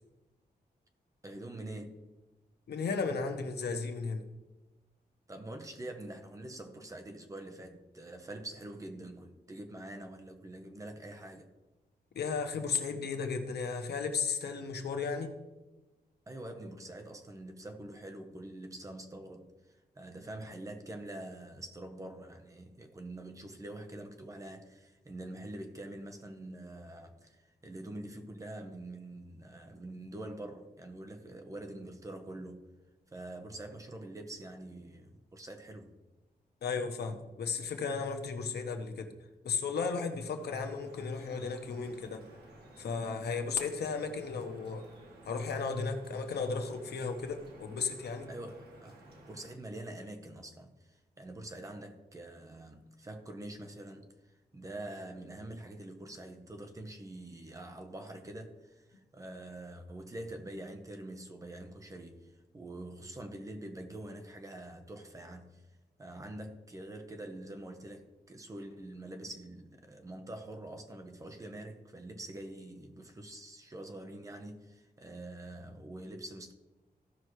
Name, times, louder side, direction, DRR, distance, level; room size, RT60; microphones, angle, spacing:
voice 1, 1.2-2.0 5.3-11.5 16.3-19.5 20.0-32.6 33.1-36.0 48.3-54.1 54.5-65.6 66.0-76.5, right 1 dB, 20° right, 0.8 m, -45 dB
voice 2, 2.7-4.2 12.1-15.3 36.6-39.1 39.4-42.2 42.8-44.8 45.3-48.3, left 5 dB, 90° left, 1.0 m, -35 dB
Drip, 40.1-49.5, right 1 dB, 85° right, 1.7 m, -55 dB
15.5 x 5.6 x 3.1 m
wide cardioid pair, 180°, 17 cm